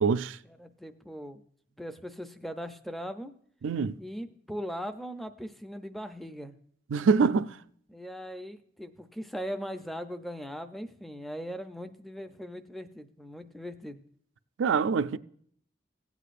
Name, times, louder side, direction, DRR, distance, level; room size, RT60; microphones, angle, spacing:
voice 1, 0.0-0.4 3.6-4.0 6.9-7.6 14.6-15.2, right 5 dB, 80° right, 0.4 m, -25 dB
voice 2, 0.6-1.4 1.8-3.3 4.0-6.6 7.9-14.0, equal, ahead, 0.5 m, -39 dB
17.0 x 8.2 x 2.5 m
head